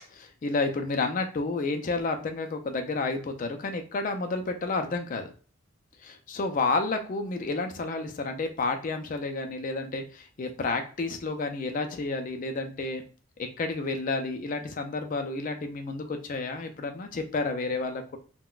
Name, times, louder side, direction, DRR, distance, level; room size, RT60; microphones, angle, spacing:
voice 1, 0.1-5.3 6.0-13.0 13.4-18.2, left 3 dB, 40° left, 6 dB, 0.3 m, -30 dB
3.7 x 2.1 x 2.3 m, 0.38 s
head